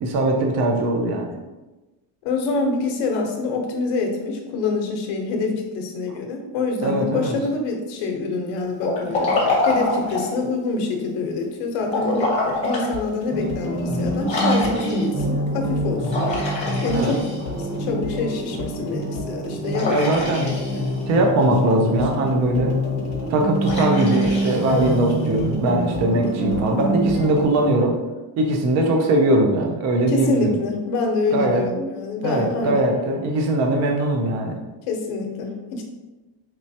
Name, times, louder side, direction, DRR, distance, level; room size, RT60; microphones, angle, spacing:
voice 1, 0.0-1.4 6.8-7.4 13.9-14.1 16.0-16.3 16.9-17.2 19.9-20.6 21.1-22.7 23.3-28.0 28.4-30.6 31.3-31.6 32.2-34.6, right 1 dB, 35° right, 2 dB, 0.5 m, -21 dB
voice 2, 2.2-16.2 16.8-17.2 17.4-20.0 20.7-20.9 24.7-25.0 30.1-32.9 34.9-35.8, left 3 dB, 90° left, 2 dB, 0.9 m, -26 dB
Liquid, 8.8-10.4 11.8-12.9 13.4-13.5 14.3-15.2 16.1-17.7 19.7-21.1 23.6-25.3, left 2 dB, 15° left, 0.8 m, -26 dB
sound 1, 12.5-27.4, left 4 dB, 55° left, 0.8 m, -37 dB
sound 2, 13.3-27.7, right 1 dB, 20° right, 0.8 m, -26 dB
4.5 x 3.1 x 2.7 m, 1.1 s
cardioid pair, 175°, 47 cm